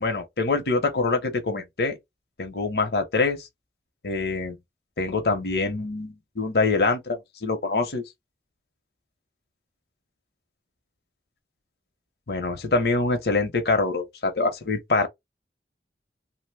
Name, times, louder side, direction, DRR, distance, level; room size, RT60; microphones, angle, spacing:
voice 1, 0.0-2.0 2.4-3.5 4.0-4.6 5.0-8.0 12.3-15.1, left 3 dB, 65° left, 0.7 m, -25 dB
2.9 x 2.0 x 3.3 m
head